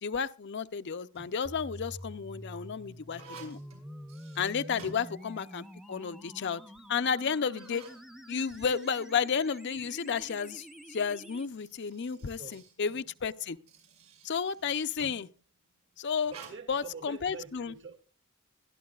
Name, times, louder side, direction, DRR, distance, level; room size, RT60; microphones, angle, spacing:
voice 1, 0.0-3.6 4.4-6.6 6.9-7.8 8.3-13.6 14.2-15.3 16.0-16.3 16.7-17.7, left 6 dB, 55° left, 0.5 m, -32 dB
sound 1, 0.9-1.5 2.2-5.6 6.0-6.1 6.8-6.9 7.4-9.9 11.1-15.3 16.2-16.5, right 4 dB, 85° right, 5.8 m, -53 dB
sound 2, 1.4-11.5, equal, ahead, 0.7 m, -47 dB
voice 2, 12.1-12.6 16.3-18.1, right 4 dB, 60° right, 2.2 m, -47 dB
21.0 x 12.5 x 2.4 m
head